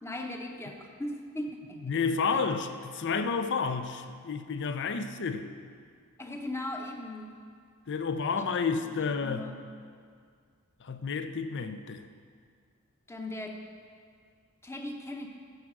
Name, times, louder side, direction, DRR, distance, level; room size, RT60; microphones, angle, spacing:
voice 1, 0.0-1.8 4.9-5.0 6.2-7.4 8.8-8.9 9.2-9.7 13.1-13.7 14.6-15.3, left 1 dB, 10° left, 3 dB, 0.8 m, -38 dB
voice 2, 1.8-5.5 7.9-9.5 10.8-12.1, left 5 dB, 55° left, 9 dB, 0.6 m, -31 dB
14.0 x 4.7 x 6.1 m, 2.1 s
head